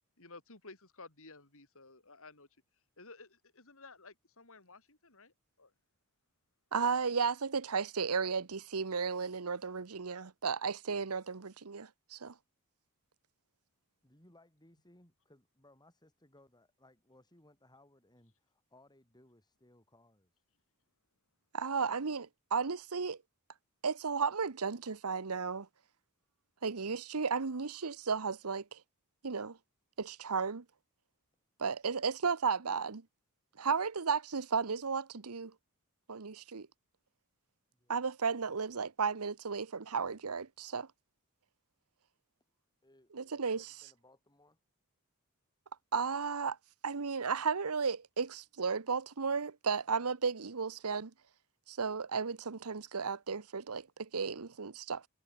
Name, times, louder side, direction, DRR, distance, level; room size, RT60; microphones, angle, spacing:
voice 1, 0.2-2.5 3.0-5.7, left 3 dB, 65° left, 6.3 m, -54 dB
voice 2, 6.7-12.3 21.5-23.2 23.8-25.7 26.6-28.8 29.2-29.6 30.0-30.6 31.6-33.0 33.6-35.5 36.1-36.7 37.9-40.9 43.1-43.7 45.9-46.6 46.8-51.1 51.7-55.0, right 5 dB, 75° right, 1.0 m, -34 dB
voice 3, 14.0-20.4 37.7-38.0 42.8-44.6, left 1 dB, 20° left, 7.9 m, -64 dB
head